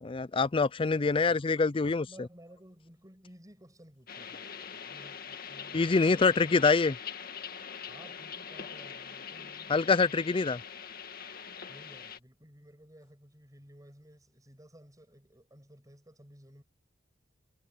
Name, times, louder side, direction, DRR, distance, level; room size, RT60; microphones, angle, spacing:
voice 1, 0.0-2.1 5.7-6.9 9.7-10.6, left 4 dB, 30° left, 0.4 m, -25 dB
voice 2, 0.9-1.7 2.0-6.6 7.9-10.0 11.7-16.6, equal, 20° right, 7.1 m, -55 dB
sound 1, 4.1-12.2, left 7 dB, 50° left, 1.9 m, -43 dB
head